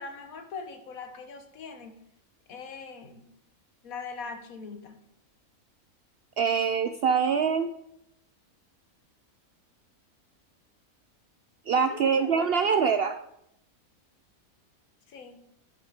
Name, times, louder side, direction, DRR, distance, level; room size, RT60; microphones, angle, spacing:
voice 1, 0.0-1.9 2.5-3.3 3.8-5.0 11.9-12.9 15.1-15.5, left 4 dB, 70° left, 6 dB, 1.5 m, -41 dB
voice 2, 6.4-7.7 11.7-13.2, right 6 dB, 70° right, 9 dB, 0.5 m, -24 dB
10.0 x 8.8 x 3.6 m, 0.77 s
omnidirectional pair, 1.5 m